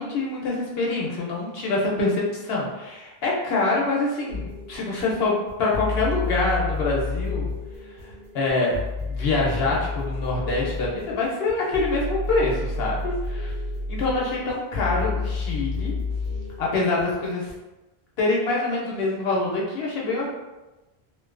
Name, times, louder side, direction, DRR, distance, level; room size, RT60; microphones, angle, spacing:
voice 1, 0.0-7.5 8.0-13.5 13.9-15.9 16.6-17.5 18.2-20.3, left 3 dB, 75° left, -3 dB, 0.8 m, -25 dB
sound 1, 4.3-17.5, left 3 dB, 80° right, 0.9 m, -31 dB
2.6 x 2.2 x 2.4 m, 1.1 s
omnidirectional pair, 1.1 m